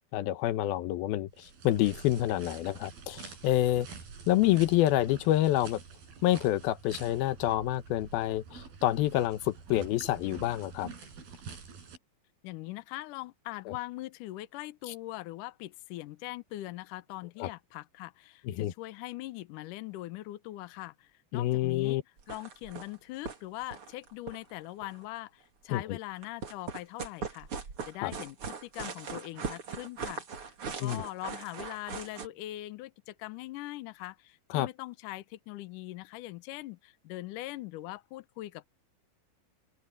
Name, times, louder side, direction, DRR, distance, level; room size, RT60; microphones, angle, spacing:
voice 1, 0.1-3.9 4.3-5.8 6.2-10.9 13.7-13.8 14.9-15.0 17.4-17.5 18.4-18.7 21.3-22.0 25.7-26.0 28.0-28.1 30.8-31.0 34.5-34.7, left 14 dB, 90° left, 2.9 m, -28 dB
sound 1, 1.3-12.0, right 5 dB, 85° right, 6.6 m, -47 dB
voice 2, 12.4-22.0 22.3-27.5 27.9-38.7, left 17 dB, 70° left, 2.3 m, -42 dB
sound 2, 22.2-23.0 23.3-23.4 23.6-25.0 26.2-32.3, right 5 dB, 40° right, 3.0 m, -40 dB
open air
omnidirectional pair, 4.2 m